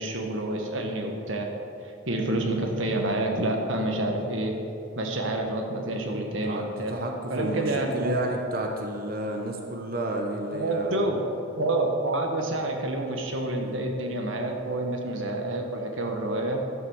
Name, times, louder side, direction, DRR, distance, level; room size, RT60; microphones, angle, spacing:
voice 1, 0.0-1.5 1.8-4.6 4.9-7.0 7.3-8.2 10.5-11.2 11.5-16.6, right 2 dB, 75° right, 2 dB, 1.3 m, -28 dB
voice 2, 6.9-7.7 7.9-11.0 13.6-13.9, right 1 dB, 45° right, 2 dB, 0.9 m, -31 dB
11.0 x 5.7 x 6.5 m, 2.6 s
head